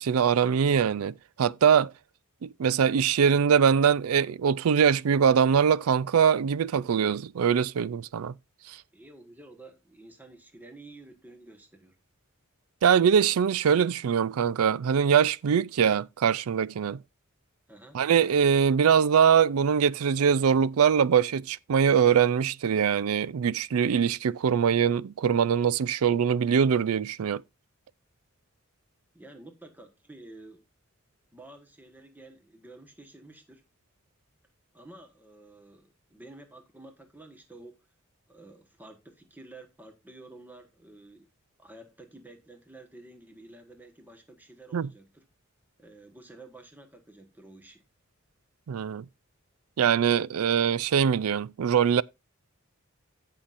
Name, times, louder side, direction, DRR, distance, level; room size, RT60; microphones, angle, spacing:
voice 1, 0.0-1.9 2.4-8.3 8.7-8.8 12.8-17.0 17.9-27.4 44.7-44.9 48.7-49.0 49.8-52.0, right 7 dB, 90° right, 0.4 m, -23 dB
voice 2, 8.9-12.0 17.7-18.0 29.1-30.6 31.3-33.6 34.7-37.8 38.3-41.3 41.6-45.3 45.8-47.8, right 2 dB, 10° right, 1.3 m, -50 dB
17.0 x 5.7 x 2.5 m
head